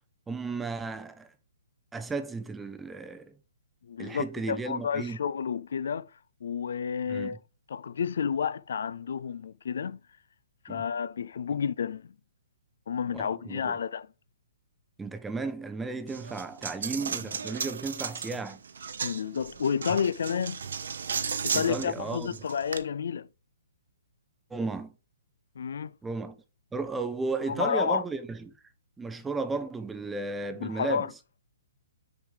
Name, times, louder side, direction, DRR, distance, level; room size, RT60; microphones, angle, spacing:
voice 1, 0.3-1.3 1.9-3.3 4.0-5.2 7.1-7.4 10.7-10.8 13.1-13.7 15.0-18.6 21.5-22.3 24.5-24.9 26.0-26.4 26.7-28.5 29.0-31.1, right 3 dB, 5° right, 0.6 m, -34 dB
voice 2, 3.9-6.1 6.4-7.4 7.7-10.0 10.6-12.1 12.9-14.1 19.0-20.6 21.4-23.3 25.6-25.9 27.5-28.0 30.6-31.1, left 7 dB, 70° left, 0.3 m, -30 dB
Coin (dropping), 16.1-22.8, right 6 dB, 75° right, 1.0 m, -35 dB
6.5 x 4.9 x 4.9 m
hypercardioid pair, 160°, 0 cm